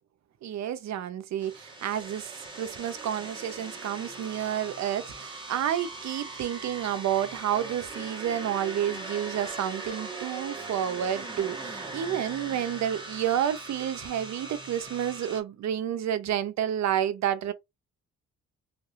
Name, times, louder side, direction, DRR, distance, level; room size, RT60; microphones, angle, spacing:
voice 1, 0.4-17.5, right 10 dB, 65° right, 0.7 m, -30 dB
sound 1, 1.4-15.4, right 2 dB, 15° right, 1.3 m, -40 dB
3.4 x 2.8 x 2.4 m
cardioid pair, 90°, 30 cm